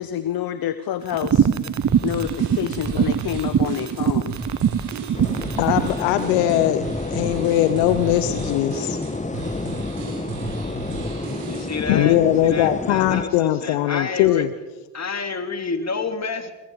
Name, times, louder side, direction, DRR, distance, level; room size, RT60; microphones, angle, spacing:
voice 1, 0.0-1.5 2.0-4.4, left 11 dB, 55° left, 13 dB, 1.0 m, -28 dB
sound 1, 1.1-6.0, right 8 dB, 40° right, 1.2 m, -22 dB
sound 2, 1.8-11.9, right 4 dB, 85° right, 4.9 m, -34 dB
sound 3, 5.1-13.2, left 3 dB, 15° left, 1.8 m, -30 dB
voice 2, 5.6-9.0 11.9-14.5, left 13 dB, 80° left, 12 dB, 1.0 m, -20 dB
voice 3, 11.2-14.5 14.9-16.5, left 4 dB, 35° left, 7 dB, 3.2 m, -29 dB
25.0 x 21.5 x 4.9 m, 1.2 s
hypercardioid pair, 50°, 44 cm